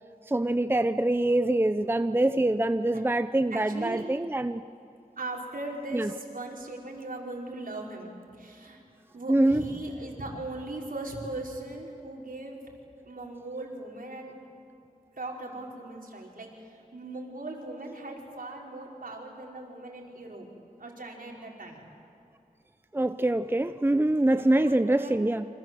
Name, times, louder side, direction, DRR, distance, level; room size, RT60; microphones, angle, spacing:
voice 1, 0.3-4.6 5.9-6.1 9.3-9.6 22.9-25.5, right 1 dB, 15° right, 11 dB, 0.7 m, -24 dB
voice 2, 3.5-4.0 5.2-8.8 9.1-12.6 13.0-14.3 15.2-20.5 20.8-21.9 24.3-25.3, right 2 dB, 70° right, -1 dB, 5.0 m, -39 dB
28.5 x 26.0 x 7.8 m, 2.6 s
wide cardioid pair, 75°, 15 cm